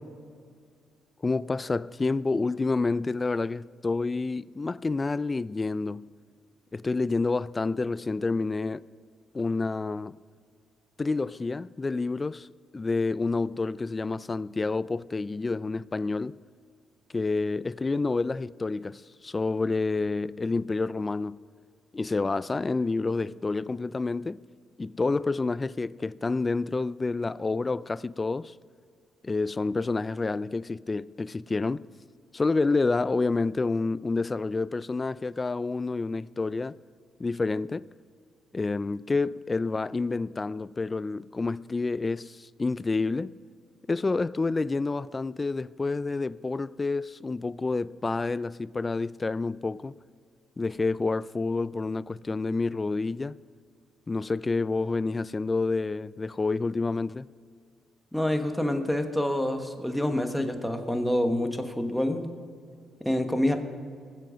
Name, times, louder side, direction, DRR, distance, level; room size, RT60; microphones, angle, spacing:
voice 1, 1.2-6.1 6.7-8.8 9.3-10.2 11.0-12.5 12.7-16.4 17.1-21.4 21.9-24.4 24.8-28.5 29.2-31.8 32.3-36.8 37.2-37.9 38.5-43.3 43.9-49.9 50.6-53.4 54.1-57.3, left 3 dB, 25° left, 0.3 m, -28 dB
voice 2, 58.1-62.3 63.0-63.6, left 1 dB, ahead, 1.3 m, -27 dB
20.0 x 7.7 x 5.1 m
cardioid pair, 90°, 0 cm